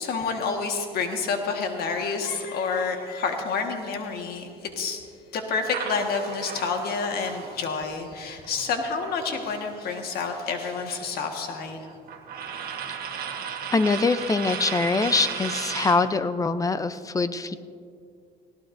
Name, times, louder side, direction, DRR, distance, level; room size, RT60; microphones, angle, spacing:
voice 1, 0.0-5.0 5.3-11.9, left 5 dB, 65° left, 4 dB, 1.6 m, -29 dB
sound 1, 5.7-9.8 10.1-16.1, right 7 dB, 60° right, 1.4 m, -35 dB
voice 2, 13.7-17.6, left 4 dB, 20° left, 12 dB, 0.6 m, -23 dB
19.0 x 17.0 x 2.6 m, 2.4 s
cardioid pair, 110°, 17 cm